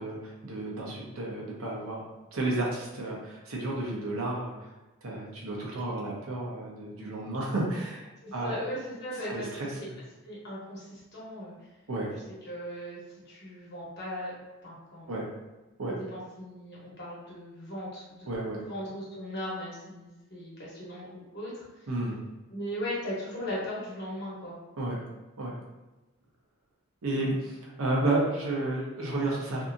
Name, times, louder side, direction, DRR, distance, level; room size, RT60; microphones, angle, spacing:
voice 1, 0.0-4.7 5.0-8.6 9.3-9.7 11.9-12.1 15.1-15.3 15.8-15.9 18.3-18.6 21.9-22.2 24.8-25.1 25.4-25.6 27.0-29.7, right 2 dB, 80° right, -3 dB, 0.7 m, -32 dB
voice 2, 8.2-9.9 10.2-11.7 12.4-13.0 13.2-14.3 14.6-15.2 15.8-18.3 18.7-21.9 22.5-24.5, equal, 50° left, -6 dB, 1.0 m, -38 dB
2.7 x 2.6 x 2.5 m, 1.1 s
head